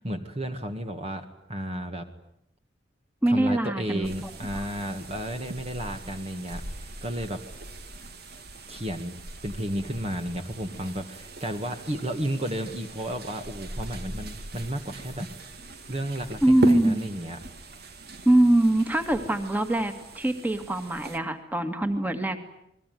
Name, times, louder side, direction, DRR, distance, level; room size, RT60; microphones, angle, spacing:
voice 1, 0.0-2.1 3.3-7.4 8.7-9.2 9.4-15.3 15.9-17.4, equal, 35° right, 6 dB, 2.0 m, -33 dB
voice 2, 3.2-4.1 16.4-17.1 18.3-22.4, right 1 dB, 10° right, 7 dB, 2.3 m, -23 dB
sound 1, 4.0-21.2, right 1 dB, 60° right, 2.4 m, -38 dB
28.5 x 21.5 x 9.5 m, 0.76 s
head